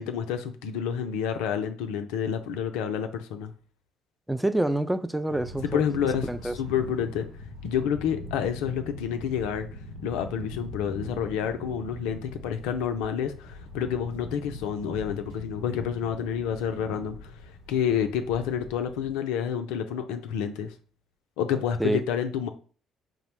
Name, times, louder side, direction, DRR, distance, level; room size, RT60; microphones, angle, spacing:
voice 1, 0.0-3.5 5.6-7.3 7.6-9.7 10.0-17.3 17.7-20.7 21.4-22.5, left 8 dB, 75° left, 0.3 m, -29 dB
voice 2, 4.3-5.8 6.2-6.5 21.8-22.0, right 1 dB, 5° right, 0.3 m, -27 dB
sound 1, 5.3-19.1, left 1 dB, 85° right, 0.7 m, -42 dB
4.7 x 2.0 x 2.9 m
hypercardioid pair, 55°, 0 cm